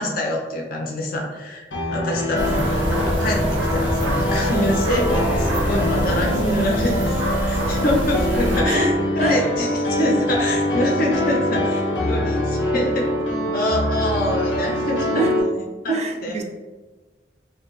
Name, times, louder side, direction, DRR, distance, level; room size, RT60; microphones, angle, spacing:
voice 1, 0.0-13.0 13.5-16.0 16.2-16.3, left 1 dB, 50° left, 0 dB, 0.5 m, -25 dB
Piano, 1.7-15.4, left 1 dB, 90° left, 0.7 m, -24 dB
sound 1, 2.4-8.6, right 1 dB, 85° right, 0.5 m, -24 dB
voice 2, 15.9-16.4, right 3 dB, 35° right, 3 dB, 0.3 m, -24 dB
2.8 x 2.2 x 2.4 m, 1.3 s
head